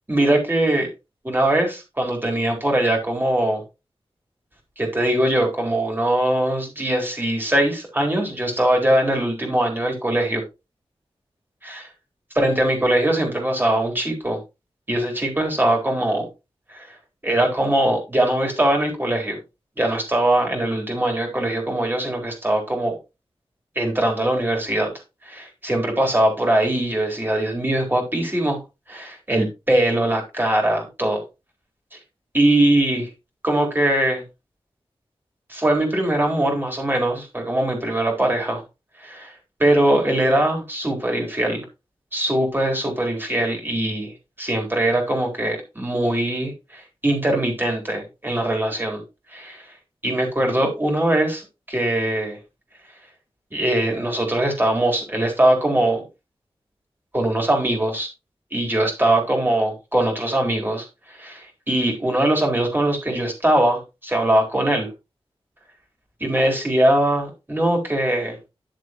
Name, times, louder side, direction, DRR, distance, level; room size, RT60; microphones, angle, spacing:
voice 1, 0.1-0.9 1.2-3.6 4.8-10.4 11.6-11.9 12.3-14.4 14.9-16.3 16.7-16.9 17.2-19.4 19.8-22.9 23.8-24.9 25.3-28.6 28.9-31.2 32.3-33.1 33.4-34.2 35.5-38.6 39.0-39.3 39.6-41.7 42.1-44.1 44.4-49.0 49.3-49.6 50.0-52.4 53.5-56.0 57.1-58.1 58.5-64.9 66.2-68.4, right 1 dB, 20° right, 1 dB, 4.1 m, -21 dB
11.0 x 7.4 x 3.0 m, 0.26 s
wide cardioid pair, 100°, 10 cm